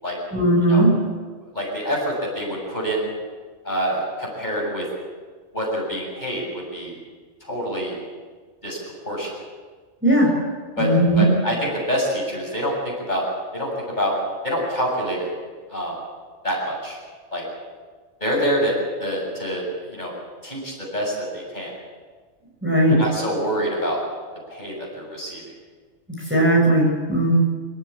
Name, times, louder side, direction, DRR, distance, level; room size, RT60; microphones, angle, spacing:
voice 1, 0.3-0.9 10.0-10.3 10.8-11.3 22.6-23.0 26.3-27.4, right 1 dB, 10° right, -3 dB, 7.1 m, -17 dB
voice 2, 1.5-3.1 3.6-4.9 5.5-7.0 7.4-8.0 8.6-8.8 9.0-9.3 10.8-10.9 11.2-13.3 13.5-14.1 14.4-15.3 15.7-15.9 16.4-17.0 17.3-17.4 18.2-18.7 19.0-20.1 20.4-21.7 22.9-24.0 24.5-25.4, equal, 40° left, -2 dB, 7.8 m, -26 dB
27.5 x 15.0 x 8.7 m, 1.5 s
omnidirectional pair, 1.2 m